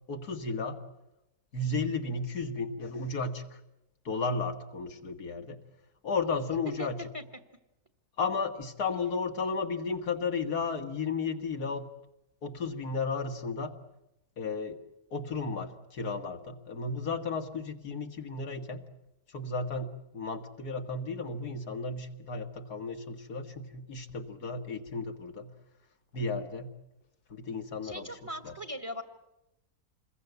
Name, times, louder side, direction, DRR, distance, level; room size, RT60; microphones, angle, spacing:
voice 1, 0.1-0.8 1.5-3.6 4.1-5.6 6.0-7.0 8.2-11.9 12.4-13.7 14.4-14.8 15.1-18.8 19.3-25.5 26.1-26.7 27.3-28.1 28.4-28.5, left 4 dB, 85° left, 6 dB, 2.3 m, -34 dB
voice 2, 27.8-29.0, equal, 20° right, 7 dB, 1.7 m, -39 dB
27.5 x 21.5 x 8.1 m, 0.90 s
omnidirectional pair, 1.6 m